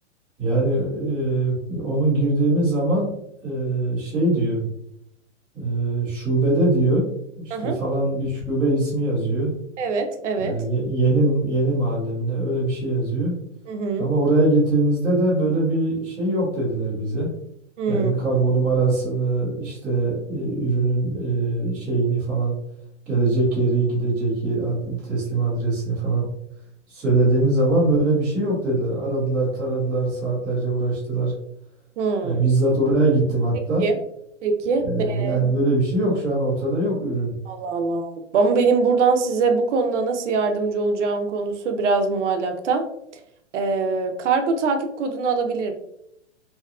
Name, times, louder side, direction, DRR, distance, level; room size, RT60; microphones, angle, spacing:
voice 1, 0.4-3.1 3.4-4.7 5.5-7.0 7.4-9.5 10.4-13.3 14.0-17.3 17.9-22.5 23.1-26.3 26.9-31.3 32.2-33.9 34.8-37.4, right 2 dB, 5° right, -14 dB, 0.5 m, -22 dB
voice 2, 9.8-10.5 13.7-14.1 17.8-18.2 32.0-32.4 33.8-34.0 34.4-35.4 37.5-42.8 43.5-45.7, right 4 dB, 75° right, 5 dB, 0.5 m, -23 dB
2.7 x 2.2 x 2.3 m, 0.77 s
hypercardioid pair, 170°, 37 cm